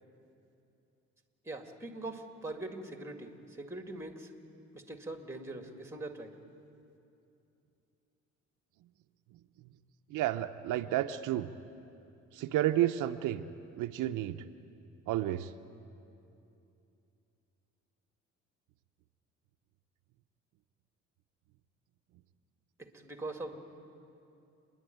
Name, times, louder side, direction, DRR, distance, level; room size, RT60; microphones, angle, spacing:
voice 1, 1.4-4.3 4.7-6.3 22.9-23.6, right 2 dB, 10° right, 5 dB, 2.0 m, -42 dB
voice 2, 10.1-11.5 12.3-13.4 13.8-14.4 15.1-15.5, right 13 dB, 90° right, 8 dB, 0.7 m, -31 dB
28.0 x 11.0 x 9.2 m, 2.7 s
cardioid pair, 90°, 30 cm